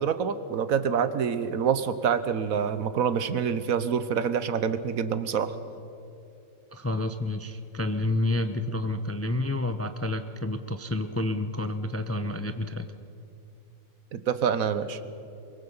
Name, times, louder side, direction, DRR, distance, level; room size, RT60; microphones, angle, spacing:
voice 1, 0.0-5.5 14.1-15.0, right 7 dB, 80° right, 12 dB, 1.4 m, -26 dB
voice 2, 6.7-12.9, left 2 dB, 15° left, 9 dB, 0.5 m, -29 dB
23.5 x 22.5 x 5.6 m, 2.7 s
omnidirectional pair, 1.4 m